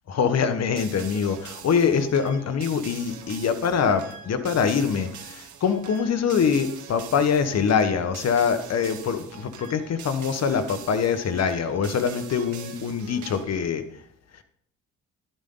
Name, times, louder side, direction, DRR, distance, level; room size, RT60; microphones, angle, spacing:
voice 1, 0.1-13.8, left 6 dB, 60° left, 9 dB, 1.4 m, -24 dB
sound 1, 0.8-13.7, right 8 dB, 75° right, 1.8 m, -43 dB
12.5 x 9.7 x 3.9 m, 0.67 s
cardioid pair, 90°, 30 cm